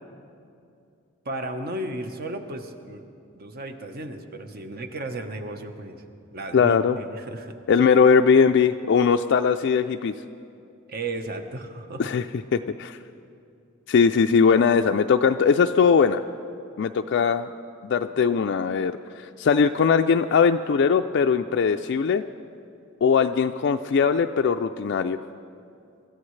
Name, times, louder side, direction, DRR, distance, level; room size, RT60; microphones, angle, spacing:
voice 1, 1.2-3.0 3.3-6.0 6.3-7.5 10.9-12.1, right 2 dB, 45° right, 6 dB, 1.0 m, -34 dB
voice 2, 6.5-7.0 7.7-10.1 12.0-12.2 12.5-13.0 13.9-16.2 16.8-17.5 17.8-22.2 23.0-25.2, left 6 dB, 55° left, 6 dB, 0.3 m, -20 dB
26.0 x 14.5 x 3.2 m, 2.6 s
head